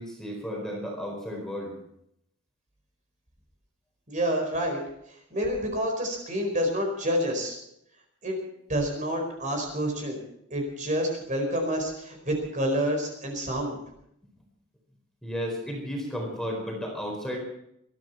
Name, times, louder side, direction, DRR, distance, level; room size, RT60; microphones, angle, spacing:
voice 1, 0.0-1.7 15.2-17.4, equal, ahead, 0 dB, 4.4 m, -33 dB
voice 2, 4.1-4.8 5.3-7.6 8.2-8.4 8.7-10.2 10.5-13.8, equal, 35° right, 3 dB, 4.7 m, -28 dB
22.0 x 14.0 x 4.5 m, 0.75 s
head